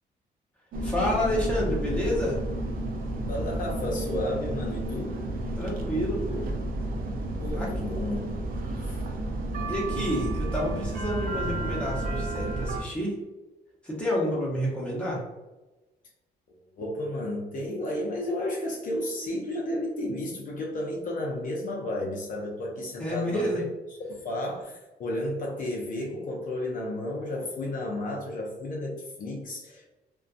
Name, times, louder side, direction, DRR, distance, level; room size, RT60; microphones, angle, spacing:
sound 1, 0.7-12.8, right 1 dB, 60° right, 0.4 m, -31 dB
voice 1, 0.8-2.4 5.6-6.5 7.5-7.7 9.7-13.2 13.8-15.2 23.0-23.6, equal, 5° left, -6 dB, 0.8 m, -29 dB
voice 2, 3.3-5.2 7.4-8.4 8.8-9.0 16.8-23.7 24.1-29.9, left 1 dB, 50° left, -2 dB, 0.5 m, -32 dB
2.5 x 2.2 x 2.4 m, 1.1 s
cardioid pair, 135°, 17 cm